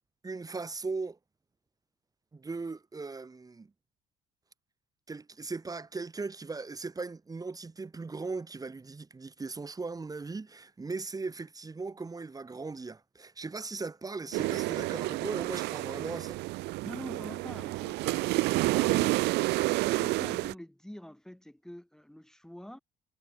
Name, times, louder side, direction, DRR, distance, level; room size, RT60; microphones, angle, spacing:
voice 1, 0.2-1.2 2.3-3.7 5.1-16.4, right 4 dB, 20° right, 5.3 m, -38 dB
sound 1, 14.3-20.5, right 21 dB, 80° right, 0.4 m, -29 dB
voice 2, 16.8-19.3 19.5-22.8, equal, 5° left, 4.3 m, -46 dB
cardioid pair, 110°, 17 cm